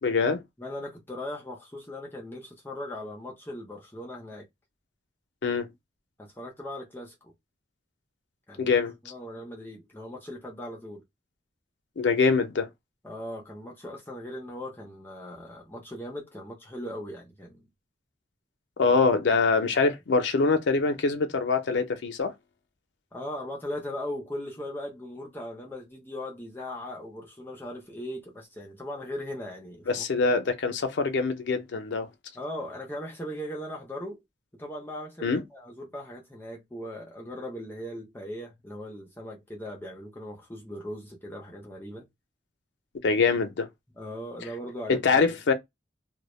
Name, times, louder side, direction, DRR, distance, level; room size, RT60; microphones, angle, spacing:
voice 1, 0.0-0.4 5.4-5.7 8.6-8.9 12.0-12.7 18.8-22.3 29.9-32.1 35.2-35.4 43.0-43.7 44.9-45.5, left 4 dB, 75° left, 0.5 m, -24 dB
voice 2, 0.6-4.4 6.2-7.3 8.5-8.7 9.0-11.0 13.0-17.7 18.8-18.9 23.1-30.0 32.3-34.2 34.5-42.1 44.0-45.4, left 1 dB, 10° left, 0.5 m, -39 dB
2.1 x 2.0 x 3.0 m
head